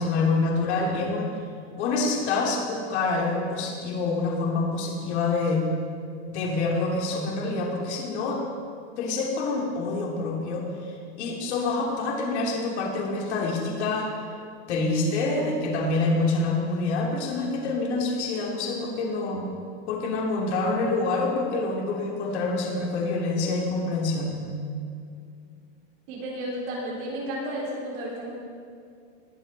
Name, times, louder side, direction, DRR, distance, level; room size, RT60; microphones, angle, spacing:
voice 1, 0.0-1.3 1.8-5.6 6.3-8.4 9.0-14.1 14.7-19.5 19.9-24.5, left 3 dB, 75° left, -2 dB, 3.1 m, -26 dB
voice 2, 26.1-28.3, right 1 dB, 50° right, -4 dB, 3.9 m, -32 dB
20.0 x 8.0 x 4.3 m, 2.4 s
supercardioid pair, 155°, 34 cm